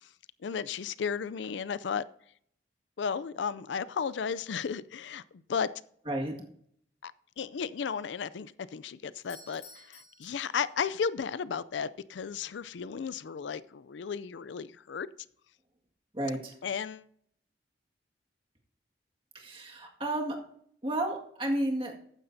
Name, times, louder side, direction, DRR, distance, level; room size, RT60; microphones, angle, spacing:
voice 1, 0.4-2.0 3.0-5.2 5.5-5.7 7.0-7.1 7.4-15.1 16.6-17.1, left 6 dB, 85° left, 0.4 m, -34 dB
Doorbell, 9.1-11.1, left 3 dB, 40° left, 3.4 m, -53 dB
voice 2, 16.1-16.6 19.3-20.4 20.8-21.9, right 1 dB, 30° right, 1.9 m, -32 dB
14.5 x 9.9 x 2.7 m
head